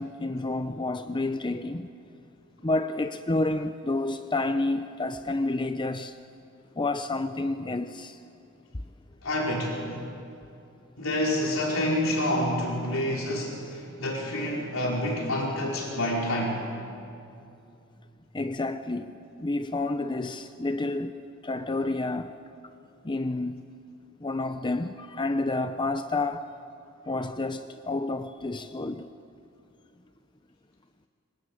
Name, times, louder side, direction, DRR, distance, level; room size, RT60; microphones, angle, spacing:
voice 1, 0.0-1.9 2.6-6.2 6.8-8.2 18.3-22.3 23.0-23.6 24.2-26.5 27.1-29.1, left 2 dB, 25° left, 0.7 m, -29 dB
voice 2, 9.2-9.8 11.0-16.6, left 1 dB, 70° left, 5.1 m, -28 dB
26.0 x 24.0 x 8.9 m
head